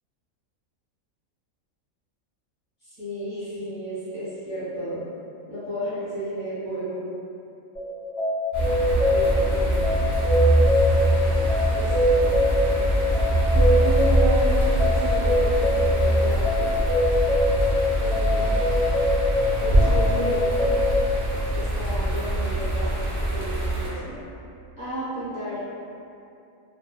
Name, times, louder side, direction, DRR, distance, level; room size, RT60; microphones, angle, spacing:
voice 1, 2.8-5.0 5.5-7.0 9.1-10.0 11.7-12.9 13.5-16.8 18.0-18.6 19.6-20.7 21.5-22.9 23.2-24.1 24.8-25.6, right 1 dB, 45° left, -13 dB, 0.8 m, -33 dB
sound 1, 7.7-21.0, left 1 dB, ahead, 0.5 m, -24 dB
sound 2, 8.5-23.9, right 1 dB, 60° right, 0.6 m, -23 dB
2.7 x 2.0 x 2.2 m, 2.6 s
omnidirectional pair, 1.4 m